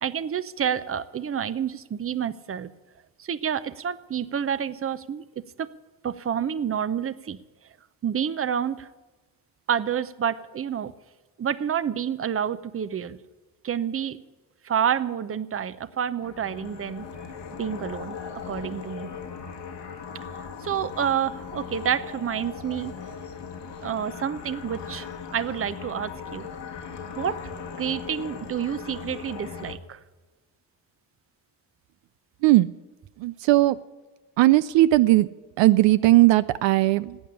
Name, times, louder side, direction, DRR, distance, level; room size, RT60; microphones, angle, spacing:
voice 1, 0.0-2.7 3.2-5.7 6.0-7.4 8.0-8.9 9.7-10.9 11.4-13.2 13.6-14.2 14.6-17.3 17.6-18.2 18.5-19.1 20.3-22.9 23.8-26.5 27.2-27.5 27.8-30.0, right 8 dB, 30° right, 16 dB, 0.7 m, -29 dB
sound 1, 16.2-29.8, left 6 dB, 65° left, 1.7 m, -38 dB
voice 2, 33.2-33.8 34.4-35.3 35.6-37.2, right 17 dB, 70° right, 15 dB, 0.5 m, -18 dB
12.5 x 8.5 x 9.7 m, 1.2 s
supercardioid pair, 65°, 45 cm